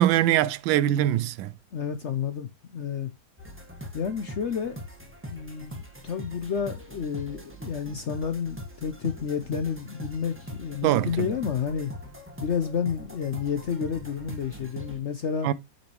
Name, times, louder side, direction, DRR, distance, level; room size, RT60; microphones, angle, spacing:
voice 1, 0.0-1.5 10.8-11.1 15.4-15.5, right 12 dB, 80° right, 1.3 m, -22 dB
voice 2, 1.7-3.1 3.9-4.8 5.3-11.9 12.4-15.5, left 7 dB, 75° left, 0.6 m, -30 dB
sound 1, 3.4-15.0, equal, 5° right, 1.5 m, -42 dB
8.5 x 5.8 x 3.0 m
omnidirectional pair, 2.1 m